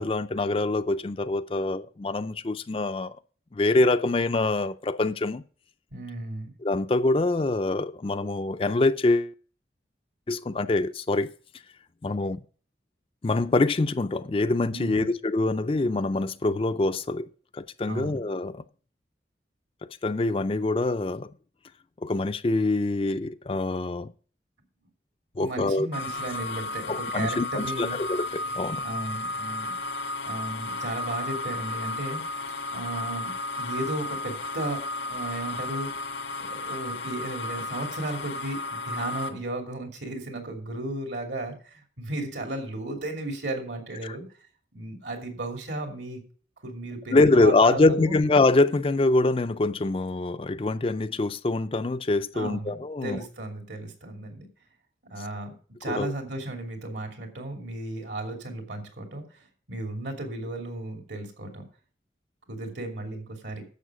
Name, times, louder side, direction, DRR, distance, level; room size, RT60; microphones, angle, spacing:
voice 1, 0.0-3.2 3.5-5.4 6.6-9.3 10.3-11.3 12.0-12.4 13.2-17.3 17.5-18.6 20.0-21.3 22.0-24.1 25.4-25.9 26.9-28.8 44.0-44.2 47.1-53.2 55.9-56.1, left 2 dB, 30° left, 0.4 m, -24 dB
voice 2, 5.9-6.5 14.7-15.1 17.9-18.3 25.4-28.0 28.8-29.8 30.2-35.9 36.4-44.2 44.7-46.2 46.6-48.2 52.3-54.5 55.1-55.5 55.8-61.7 62.5-63.6, right 2 dB, 75° right, 2.8 m, -35 dB
sound 1, 25.9-39.3, left 2 dB, 90° left, 1.8 m, -33 dB
11.0 x 7.6 x 5.0 m
head